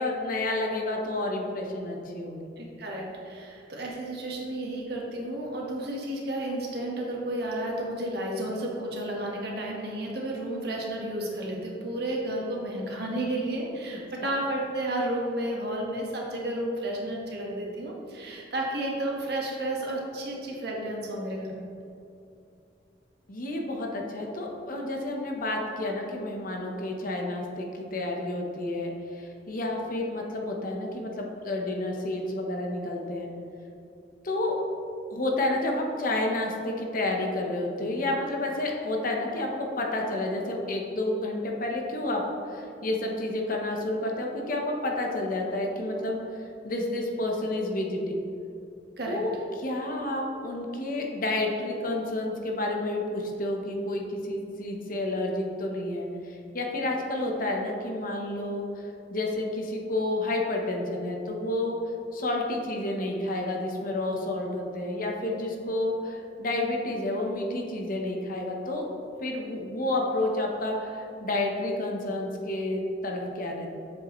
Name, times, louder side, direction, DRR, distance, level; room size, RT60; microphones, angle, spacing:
voice 1, 0.0-2.5 23.3-33.3 34.2-34.6 35.1-42.2 42.5-48.2 49.1-61.8 62.1-68.9 69.2-73.7, left 2 dB, 50° left, 1 dB, 1.0 m, -30 dB
voice 2, 2.6-21.7 49.0-49.2, right 1 dB, 65° right, -2 dB, 1.5 m, -32 dB
7.6 x 7.3 x 3.1 m, 2.7 s
head